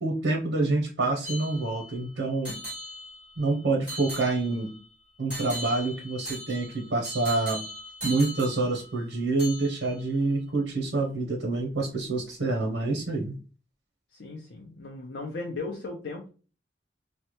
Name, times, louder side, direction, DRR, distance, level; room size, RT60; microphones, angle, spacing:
voice 1, 0.0-2.5 3.4-4.7 5.2-7.6 8.0-13.3, right 3 dB, 75° right, 2 dB, 0.7 m, -27 dB
sound 1, 1.2-2.0 2.4-3.5 3.9-4.8 5.3-9.1 9.4-10.0, equal, 5° right, 1.4 m, -39 dB
voice 2, 14.1-16.3, left 3 dB, 85° left, -1 dB, 0.6 m, -37 dB
3.2 x 2.1 x 2.9 m, 0.36 s
head